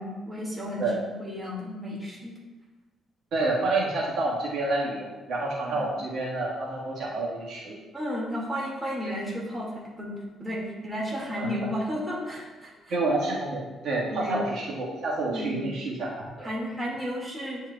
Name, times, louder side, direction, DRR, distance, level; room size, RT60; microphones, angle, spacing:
voice 1, 0.0-2.3 5.7-5.8 7.9-10.1 10.4-12.9 14.1-14.4 15.3-15.6 16.4-17.6, equal, 15° right, -4 dB, 1.9 m, -33 dB
voice 2, 3.3-7.8 11.4-11.5 12.9-16.5, right 2 dB, 70° right, -5 dB, 1.5 m, -29 dB
9.5 x 4.6 x 2.3 m, 1.2 s
cardioid pair, 90°, 0 cm